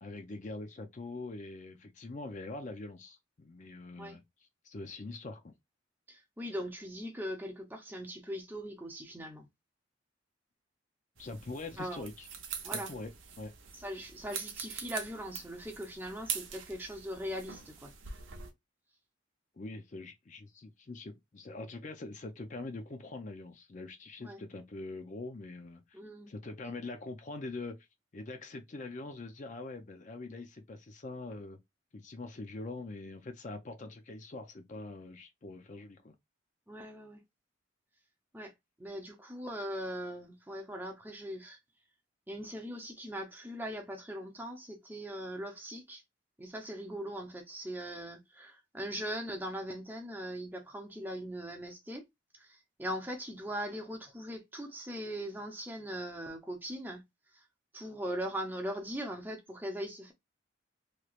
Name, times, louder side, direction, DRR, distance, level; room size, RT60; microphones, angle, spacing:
voice 1, 0.0-4.2 4.6-5.5 11.2-12.3 12.7-13.1 13.4-13.5 19.6-26.0 26.3-27.8 28.1-31.6 31.9-36.1, left 2 dB, 40° left, 0.5 m, -43 dB
voice 2, 6.1-9.5 11.8-12.1 12.6-12.9 13.7-17.9 24.2-24.4 25.9-26.3 36.7-37.2 38.3-38.5 38.8-41.6 42.3-46.0 46.4-52.0 52.4-57.0 57.3-57.4 57.7-60.1, equal, 10° right, 0.7 m, -40 dB
sound 1, 11.2-18.5, right 7 dB, 90° right, 0.7 m, -43 dB
3.1 x 3.1 x 2.4 m
head